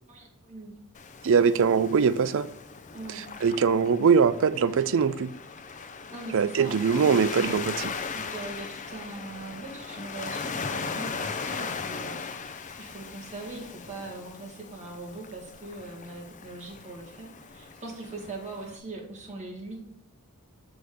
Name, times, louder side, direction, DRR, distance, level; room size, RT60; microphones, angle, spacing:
voice 1, 0.1-0.7 2.9-3.2 6.1-7.2 8.1-12.2 12.8-19.8, right 2 dB, 35° right, -1 dB, 2.1 m, -41 dB
Waves surf, 0.9-18.8, left 5 dB, 35° left, 0.6 m, -38 dB
voice 2, 1.2-2.5 3.4-5.3 6.3-7.9, right 6 dB, 60° right, 15 dB, 0.4 m, -22 dB
6.8 x 6.1 x 4.9 m, 0.73 s
head